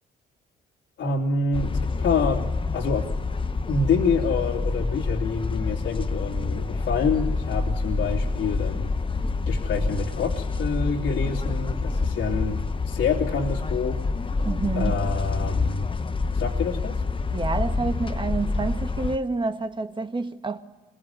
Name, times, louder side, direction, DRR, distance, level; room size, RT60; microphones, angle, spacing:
voice 1, 1.0-3.1 3.7-8.9 9.5-14.1 14.7-15.9 16.3-17.0, left 4 dB, 75° left, 3.0 m, -27 dB
sound 1, 1.5-19.2, left 3 dB, 25° left, 0.9 m, -27 dB
voice 2, 14.4-15.0 17.3-20.6, right 3 dB, 25° right, 1.8 m, -28 dB
27.0 x 22.0 x 9.2 m
cardioid pair, 90°, 20 cm